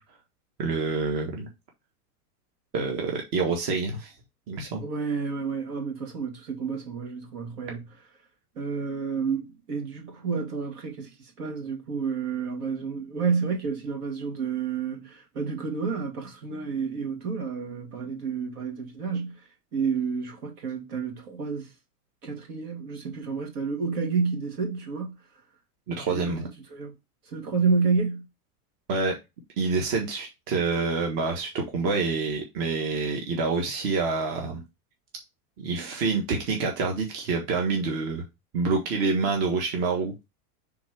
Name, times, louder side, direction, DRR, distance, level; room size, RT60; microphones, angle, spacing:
voice 1, 0.6-1.5 2.7-4.1 4.5-4.8 25.9-26.5 28.9-29.2 29.6-34.6 35.6-38.2 38.5-40.1, right 4 dB, 45° right, 1.5 m, -27 dB
voice 2, 4.8-7.8 8.6-11.1 11.4-19.4 19.7-21.7 22.2-25.1 26.1-26.4 26.7-26.9 27.3-28.2, right 5 dB, 75° right, 2.5 m, -30 dB
6.1 x 3.7 x 4.8 m
supercardioid pair, 125°, 47 cm